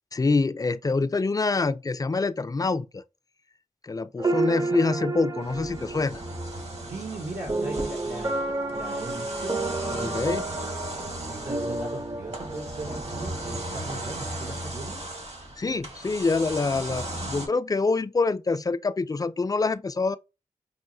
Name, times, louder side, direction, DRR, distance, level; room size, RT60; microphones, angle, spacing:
voice 1, 0.1-3.0 3.8-6.2 10.0-10.4 15.6-20.2, left 3 dB, 25° left, 0.4 m, -26 dB
sound 1, 4.2-15.2, right 2 dB, 30° right, 0.6 m, -32 dB
sound 2, 5.4-17.5, right 1 dB, 55° right, 1.3 m, -37 dB
voice 2, 6.9-10.5 11.3-15.0, right 2 dB, 70° right, 1.1 m, -38 dB
5.4 x 2.0 x 2.6 m
cardioid pair, 50°, 13 cm